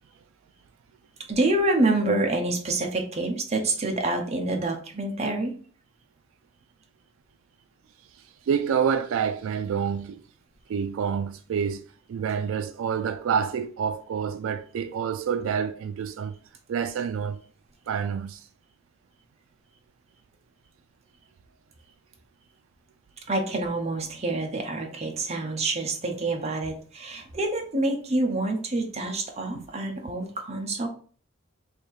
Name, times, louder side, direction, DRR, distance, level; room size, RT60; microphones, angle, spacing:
voice 1, 1.3-5.5 23.3-30.9, right 2 dB, 30° right, 0.8 m, -27 dB
voice 2, 8.5-10.2 10.7-11.8 12.1-16.3 16.7-17.4 17.9-18.5, right 7 dB, 75° right, 0.3 m, -27 dB
3.4 x 2.8 x 4.4 m
head